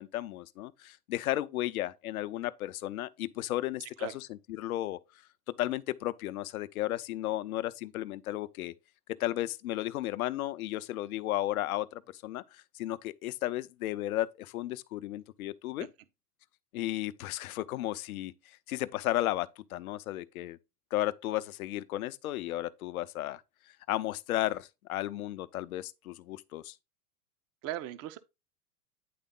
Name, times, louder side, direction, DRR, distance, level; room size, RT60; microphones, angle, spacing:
voice 1, 0.0-5.0 5.6-8.7 9.2-15.9 16.7-20.6 20.9-23.4 23.9-26.7, left 15 dB, 65° left, 0.7 m, -34 dB
voice 2, 3.8-4.2 15.8-15.9 27.6-28.2, right 13 dB, 30° right, 0.6 m, -39 dB
9.5 x 3.5 x 3.8 m
hypercardioid pair, 95°, 46 cm